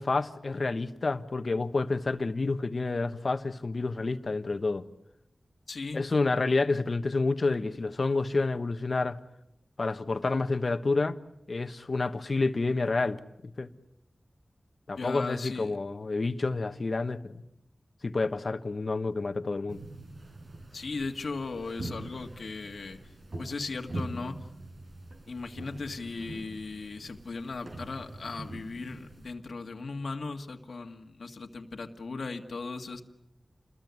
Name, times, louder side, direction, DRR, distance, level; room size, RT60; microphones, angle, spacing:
voice 1, 0.0-4.9 5.9-9.2 9.8-11.2 11.5-13.2 13.6-13.7 14.9-17.4 18.0-19.8, left 3 dB, 60° left, 1.4 m, -29 dB
voice 2, 5.7-6.0 15.0-15.7 20.7-23.0 23.4-24.5 25.3-33.0, left 3 dB, 90° left, 1.9 m, -37 dB
sound 1, 19.7-29.3, right 1 dB, 65° right, 5.1 m, -43 dB
28.5 x 21.5 x 9.6 m
wide cardioid pair, 85°, 0 cm